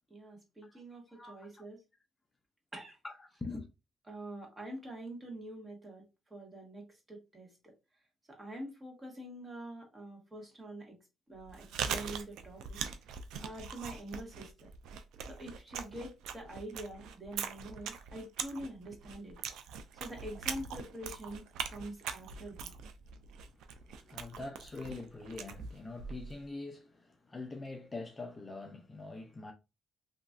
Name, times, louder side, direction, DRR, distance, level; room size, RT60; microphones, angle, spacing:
voice 1, 0.1-1.8 2.7-3.0 4.1-6.0 6.3-7.5 8.3-10.9 11.3-12.8 13.4-14.5 15.2-19.4 19.9-22.7, right 1 dB, 25° right, 1.4 m, -45 dB
voice 2, 0.6-1.6 3.0-3.7 23.5-29.5, left 3 dB, 25° left, 0.5 m, -44 dB
Chewing mastication, 11.3-26.4, right 7 dB, 90° right, 0.3 m, -42 dB
2.9 x 2.6 x 2.3 m
cardioid pair, 90°, 0 cm